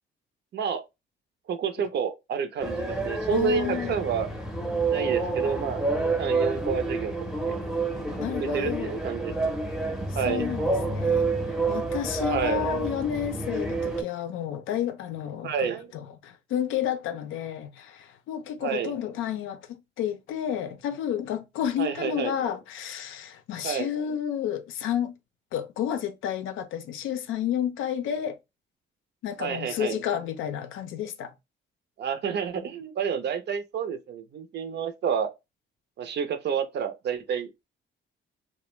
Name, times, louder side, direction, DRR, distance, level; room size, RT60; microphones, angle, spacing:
voice 1, 0.5-0.8 1.5-4.3 4.9-5.8 6.2-7.1 7.4-7.6 8.4-9.6 10.1-10.4 12.3-12.7 15.4-15.9 18.6-18.9 21.8-22.3 23.6-23.9 29.4-30.0 32.0-35.3 36.0-37.5, right 7 dB, 60° right, 0.5 m, -29 dB
sound 1, 2.6-14.0, right 3 dB, ahead, 0.6 m, -28 dB
voice 2, 3.3-3.9 8.2-9.0 10.2-25.1 25.5-28.4 29.2-31.3 32.6-32.7, left 9 dB, 85° left, 0.5 m, -31 dB
2.4 x 2.1 x 3.0 m
cardioid pair, 90°, 20 cm